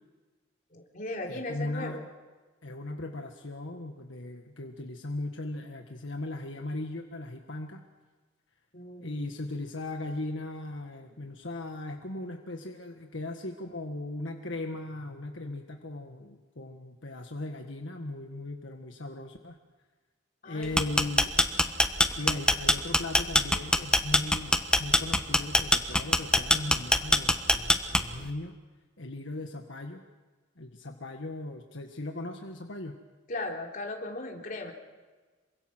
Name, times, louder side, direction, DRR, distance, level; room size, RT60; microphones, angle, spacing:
voice 1, 0.7-2.0 8.7-9.2 20.4-21.1 33.3-34.7, left 2 dB, 40° left, 0 dB, 3.8 m, -37 dB
voice 2, 1.3-2.0 2.6-7.8 9.0-19.6 20.4-21.3 22.0-28.6 29.0-30.0 30.6-33.0, left 2 dB, 70° left, 3 dB, 1.6 m, -38 dB
sound 1, 20.6-28.3, left 1 dB, 5° left, 1.1 m, -23 dB
27.5 x 24.0 x 6.3 m, 1.3 s
head